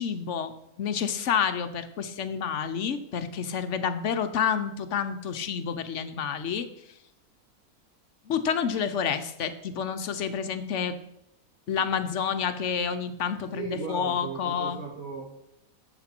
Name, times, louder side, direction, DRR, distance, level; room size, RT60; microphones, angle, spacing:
voice 1, 0.0-6.7 8.3-11.0 11.7-14.8, left 7 dB, 60° left, 10 dB, 1.0 m, -29 dB
voice 2, 13.5-15.2, right 3 dB, 65° right, -3 dB, 2.7 m, -36 dB
11.0 x 7.6 x 4.4 m, 0.80 s
omnidirectional pair, 1.6 m